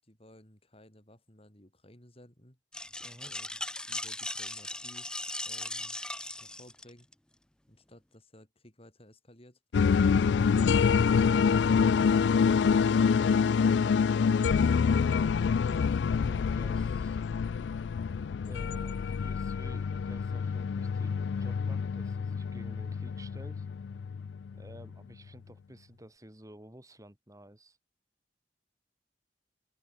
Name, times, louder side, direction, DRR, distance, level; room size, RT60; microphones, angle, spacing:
voice 1, 0.0-2.6 3.3-3.6 3.9-5.1 5.5-6.0 6.4-7.1 7.7-11.0 12.2-13.4, left 1 dB, 35° left, 6.3 m, -56 dB
sound 1, 2.7-7.1, left 1 dB, 5° left, 0.4 m, -38 dB
voice 2, 3.0-3.3 14.8-17.2 18.4-23.7 24.5-27.8, right 1 dB, 20° right, 3.2 m, -52 dB
sound 2, 9.7-24.8, left 6 dB, 85° left, 0.4 m, -26 dB
open air
head